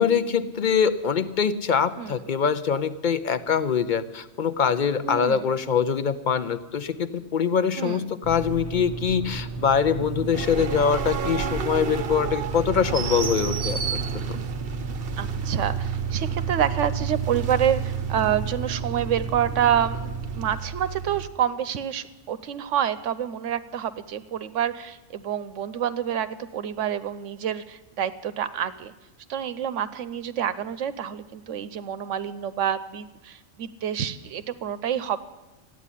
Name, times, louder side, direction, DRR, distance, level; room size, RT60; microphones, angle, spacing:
voice 1, 0.0-14.4, left 7 dB, 50° left, 12 dB, 0.7 m, -24 dB
voice 2, 5.0-5.5 7.8-8.1 15.2-28.9 29.3-35.2, right 9 dB, 80° right, 13 dB, 1.0 m, -28 dB
sound 1, 8.2-20.6, right 4 dB, 20° right, 0.4 m, -34 dB
sound 2, 10.3-21.3, right 7 dB, 55° right, 0.8 m, -31 dB
14.0 x 9.3 x 9.9 m, 1.1 s
omnidirectional pair, 1.3 m